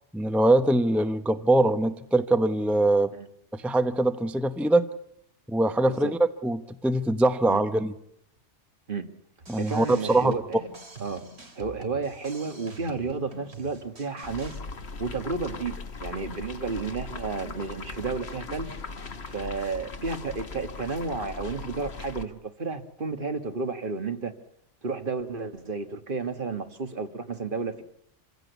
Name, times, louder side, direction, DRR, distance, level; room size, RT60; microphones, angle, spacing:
voice 1, 0.1-3.1 3.5-4.9 5.5-7.9 9.5-10.3, right 2 dB, ahead, 0.8 m, -23 dB
sound 1, 9.4-14.6, right 2 dB, 65° right, 2.8 m, -46 dB
voice 2, 9.6-10.4 11.0-11.2 11.6-14.6 15.0-18.7 19.3-24.3 24.8-27.8, right 4 dB, 45° right, 1.7 m, -32 dB
sound 2, 14.2-22.2, left 3 dB, 65° left, 1.7 m, -39 dB
27.0 x 16.5 x 8.1 m
omnidirectional pair, 1.2 m